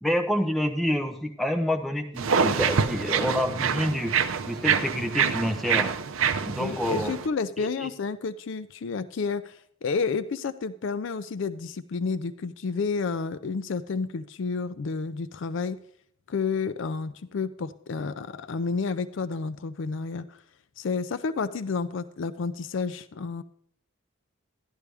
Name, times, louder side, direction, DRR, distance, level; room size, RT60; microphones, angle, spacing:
voice 1, 0.0-4.1 4.5-5.9 6.4-7.1 7.6-7.9, equal, ahead, 3 dB, 0.9 m, -28 dB
sound 1, 2.2-7.3, right 6 dB, 75° right, 0.6 m, -26 dB
voice 2, 6.6-15.8 16.3-20.4 20.8-23.4, left 4 dB, 60° left, 14 dB, 0.4 m, -30 dB
12.5 x 11.0 x 3.4 m, 0.66 s
head